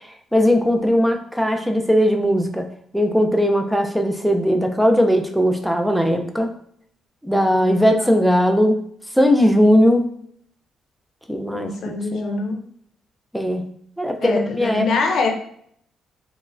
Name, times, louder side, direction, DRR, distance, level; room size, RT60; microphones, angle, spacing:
voice 1, 0.3-6.5 7.2-8.8 9.2-10.1 11.3-11.7 12.1-12.4 13.3-13.7 14.0-14.9, equal, ahead, 5 dB, 0.3 m, -18 dB
voice 2, 7.9-8.2 11.5-12.6 14.2-15.3, left 3 dB, 70° left, 2 dB, 0.5 m, -24 dB
3.1 x 2.0 x 2.5 m, 0.64 s
cardioid pair, 90°, 0 cm